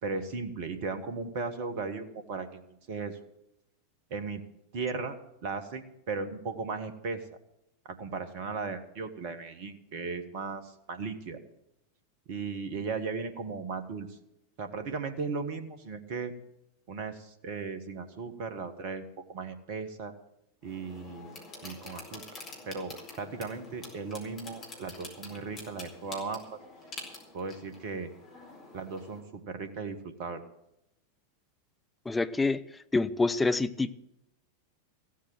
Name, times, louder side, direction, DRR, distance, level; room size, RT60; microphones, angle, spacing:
voice 1, 0.0-3.2 4.1-4.4 4.7-7.2 7.9-11.4 12.3-14.2 14.6-16.3 16.9-20.1 20.6-22.2 22.6-26.6 27.3-28.1 28.7-30.4, right 4 dB, 50° right, 9 dB, 1.5 m, -37 dB
sound 1, 20.6-29.2, left 3 dB, 30° left, 4.5 m, -47 dB
voice 2, 32.1-32.6 32.9-33.9, left 3 dB, 10° left, 11 dB, 0.7 m, -26 dB
15.5 x 8.3 x 7.6 m, 0.83 s
figure-of-eight pair, 90°, 0 cm